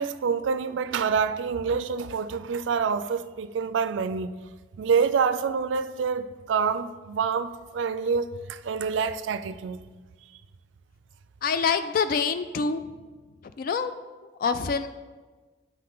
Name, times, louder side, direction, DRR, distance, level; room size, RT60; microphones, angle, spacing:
voice 1, 0.0-4.3 4.8-9.8, right 6 dB, 85° right, 0.4 m, -27 dB
voice 2, 11.4-12.9 13.6-13.9 14.4-14.9, left 5 dB, 50° left, 0.3 m, -26 dB
8.2 x 5.5 x 3.9 m
head